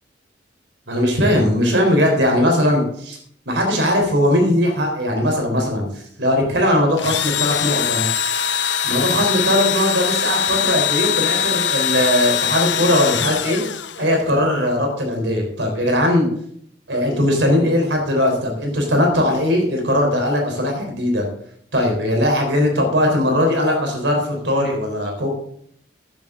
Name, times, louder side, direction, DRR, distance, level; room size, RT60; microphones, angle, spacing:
voice 1, 0.9-3.2 3.5-8.1 8.8-13.6 14.0-16.3 16.9-21.3 21.7-25.3, left 1 dB, 70° right, 2 dB, 3.8 m, -19 dB
Engine / Drill, 7.0-14.3, left 8 dB, 70° left, 0.7 m, -22 dB
13.5 x 10.5 x 3.8 m, 0.66 s
head